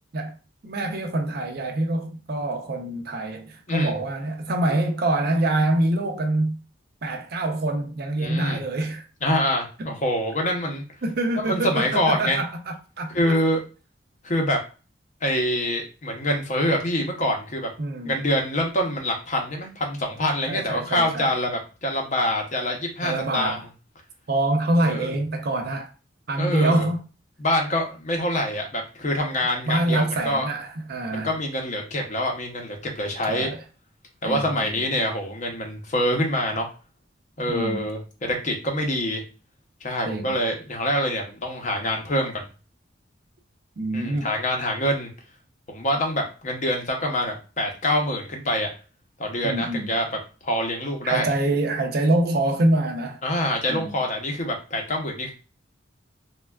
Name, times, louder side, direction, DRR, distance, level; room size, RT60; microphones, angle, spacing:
voice 1, 0.6-6.6 7.0-9.0 11.0-13.4 17.8-18.1 20.5-21.3 23.0-23.6 24.3-25.9 26.3-27.0 29.7-31.3 33.3-33.6 34.2-34.8 37.5-37.9 40.0-40.4 43.8-44.3 49.4-49.9 51.0-53.2 53.7-53.9, right 2 dB, 55° right, 0.5 m, -25 dB
voice 2, 8.2-8.6 9.2-10.8 11.4-12.4 13.1-13.6 14.2-14.6 15.2-17.7 18.0-23.6 24.8-25.1 26.3-26.9 27.4-30.4 31.1-33.5 34.2-36.7 37.4-39.2 39.8-42.4 43.9-45.1 45.7-48.7 49.2-50.1 50.4-51.3 53.2-55.3, left 1 dB, 40° left, 0.7 m, -25 dB
3.3 x 2.2 x 2.2 m
head